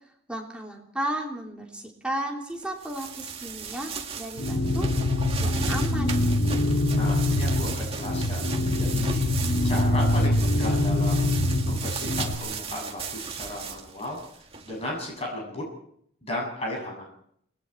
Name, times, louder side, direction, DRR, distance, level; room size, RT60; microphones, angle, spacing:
voice 1, 0.3-4.9 5.4-6.2, right 1 dB, 5° right, -1 dB, 3.4 m, -34 dB
sound 1, 2.6-15.1, right 6 dB, 30° right, 2.1 m, -37 dB
sound 2, 4.4-12.3, left 1 dB, 75° left, 2.7 m, -24 dB
voice 2, 6.9-11.3 11.7-14.2 14.6-15.6 16.2-17.1, left 1 dB, 30° left, -1 dB, 7.3 m, -35 dB
29.5 x 20.5 x 4.5 m, 0.67 s
head